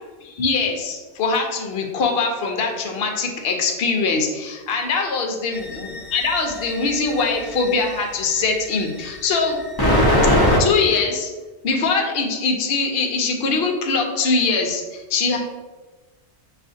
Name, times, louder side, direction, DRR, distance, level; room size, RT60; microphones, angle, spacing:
voice 1, 0.2-9.7 10.6-11.3 11.6-15.4, left 4 dB, 65° left, 2 dB, 0.8 m, -22 dB
sound 1, 5.5-8.0 8.8-10.6, left 1 dB, 25° left, 0.7 m, -20 dB
6.7 x 2.4 x 2.6 m, 1.2 s
omnidirectional pair, 1.2 m